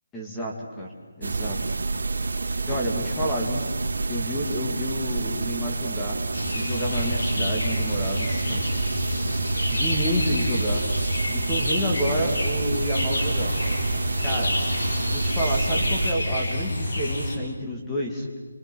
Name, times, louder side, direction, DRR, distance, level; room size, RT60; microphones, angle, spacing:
voice 1, 0.1-1.6 2.7-3.7 4.1-6.2 6.5-8.8 9.7-10.8 11.3-13.5 14.2-14.5 15.0-18.3, equal, 5° left, -2 dB, 2.1 m, -29 dB
sound 1, 1.2-16.1, right 3 dB, 85° right, 2.3 m, -28 dB
sound 2, 6.3-17.4, left 1 dB, 80° left, 5.6 m, -28 dB
28.5 x 23.0 x 6.2 m, 1.3 s
hypercardioid pair, 180°, 0 cm